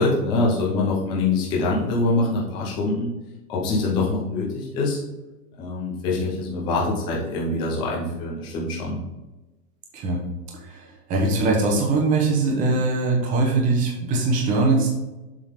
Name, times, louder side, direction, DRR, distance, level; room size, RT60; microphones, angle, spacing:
voice 1, 0.0-3.1 3.5-5.0 5.6-9.0, left 2 dB, 10° left, -4 dB, 0.6 m, -24 dB
voice 2, 10.7-14.9, right 3 dB, 15° right, -1 dB, 1.1 m, -21 dB
7.4 x 3.9 x 5.0 m, 1.1 s
supercardioid pair, 165°, 48 cm